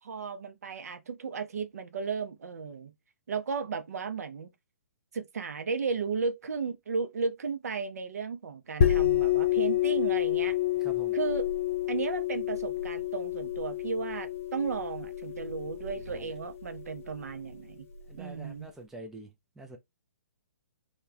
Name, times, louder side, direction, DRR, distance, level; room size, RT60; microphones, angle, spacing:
voice 1, 0.0-2.9 3.3-4.5 5.1-10.5 11.1-11.5 11.9-17.9 18.2-18.7, right 5 dB, 65° right, 0.6 m, -34 dB
sound 1, 8.8-18.2, left 11 dB, 50° left, 0.6 m, -29 dB
voice 2, 10.8-11.2 16.1-16.3 18.1-19.3 19.6-19.8, right 1 dB, 5° right, 0.3 m, -46 dB
2.2 x 2.1 x 3.3 m
figure-of-eight pair, 125°, 9 cm